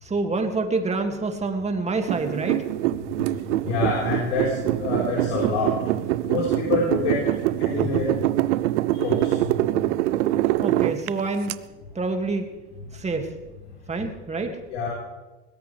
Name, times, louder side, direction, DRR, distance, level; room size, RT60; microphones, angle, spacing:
voice 1, 0.0-2.6 10.6-11.5 11.9-12.5 12.9-13.3 13.9-14.6, right 3 dB, 20° right, 4 dB, 2.3 m, -27 dB
sound 1, 2.1-11.5, right 16 dB, 80° right, 0.6 m, -24 dB
voice 2, 3.6-5.7 6.2-7.2 7.6-8.1 8.9-9.4 14.7-14.9, left 4 dB, 80° left, -5 dB, 4.5 m, -26 dB
21.0 x 17.0 x 3.4 m, 1.2 s
supercardioid pair, 95°, 35 cm